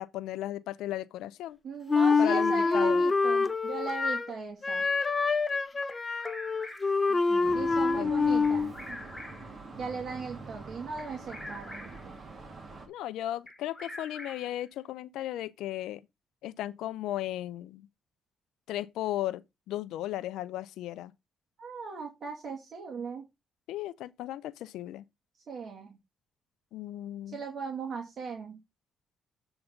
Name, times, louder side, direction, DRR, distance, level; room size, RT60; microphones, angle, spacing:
voice 1, 0.0-1.6 2.2-3.0 7.1-7.7 8.0-8.1 12.9-16.0 16.4-17.9 18.7-19.4 19.7-21.1 23.7-25.0 26.7-27.4, left 14 dB, 90° left, 0.5 m, -36 dB
voice 2, 1.6-4.8 7.5-9.0 9.8-12.2 21.6-23.2 25.5-26.0 27.3-28.6, right 5 dB, 55° right, 2.2 m, -38 dB
Wind instrument woodwind instrument, 1.9-4.3 4.6-8.7, left 4 dB, 30° left, 0.6 m, -26 dB
Bird vocalization bird call bird song, 5.9-7.1 8.4-9.6 11.0-12.1 13.5-14.6, left 1 dB, 10° left, 2.2 m, -45 dB
sound 1, 7.4-12.9, right 3 dB, 40° right, 2.6 m, -45 dB
7.9 x 4.0 x 5.7 m
cardioid pair, 90°, 0 cm